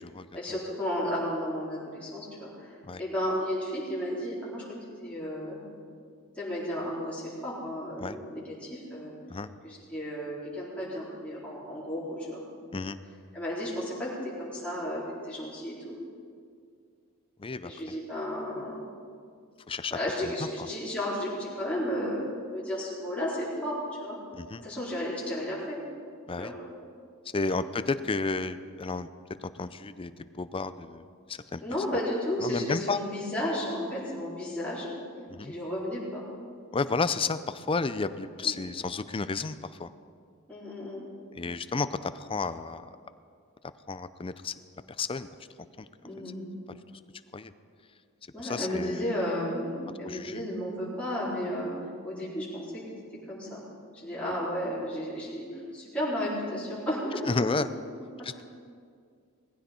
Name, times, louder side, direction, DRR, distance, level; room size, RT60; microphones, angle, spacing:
voice 1, 0.3-4.8 5.0-5.6 6.4-9.1 9.6-12.4 13.3-15.9 17.6-18.8 19.9-24.2 24.6-25.8 26.4-26.5 27.3-27.5 31.6-34.9 35.4-36.2 38.3-38.5 40.5-41.0 46.0-46.4 48.3-51.7 52.0-52.8 53.3-53.6 53.9-57.4, equal, 5° left, -9 dB, 3.9 m, -33 dB
voice 2, 17.4-18.0 19.7-20.7 24.3-24.6 26.3-26.5 27.3-29.1 29.4-31.6 31.9-32.0 32.4-33.0 35.3-35.5 36.7-39.9 41.3-42.8 43.9-44.5 45.0-45.3 45.8-45.9 47.3-47.5 48.4-49.1 50.0-50.4 57.3-57.7 58.2-58.4, left 4 dB, 25° left, 13 dB, 0.5 m, -32 dB
18.5 x 15.5 x 4.4 m, 2.2 s
head